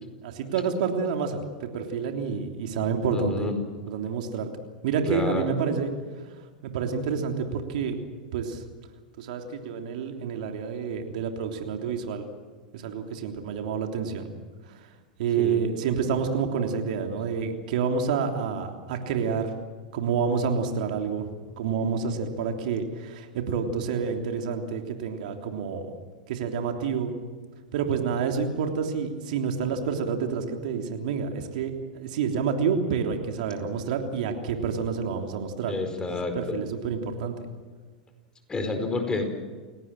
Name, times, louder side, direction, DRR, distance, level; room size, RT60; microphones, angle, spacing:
voice 1, 0.0-3.5 3.9-4.5 4.8-5.9 6.7-8.0 8.3-8.6 9.2-12.2 12.7-14.3 14.7-14.9 15.2-19.5 19.9-21.3 21.6-25.9 26.3-27.1 27.7-35.7 36.3-37.3, right 6 dB, 65° right, 4 dB, 3.2 m, -28 dB
voice 2, 3.1-3.5 5.1-5.5 15.4-15.6 35.7-36.5 38.5-39.3, left 3 dB, 15° left, 5 dB, 4.8 m, -29 dB
29.0 x 18.0 x 7.6 m, 1.5 s
hypercardioid pair, 105°, 5 cm